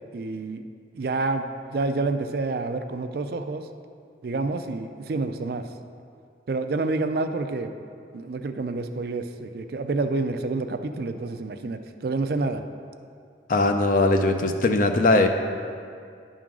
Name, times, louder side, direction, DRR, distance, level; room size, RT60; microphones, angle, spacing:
voice 1, 0.1-0.6 0.9-3.7 4.2-5.7 6.5-7.7 8.1-12.6, right 3 dB, 55° right, 8 dB, 0.4 m, -28 dB
voice 2, 13.5-15.3, left 2 dB, 45° left, 6 dB, 0.5 m, -20 dB
10.0 x 3.8 x 6.1 m, 2.3 s
head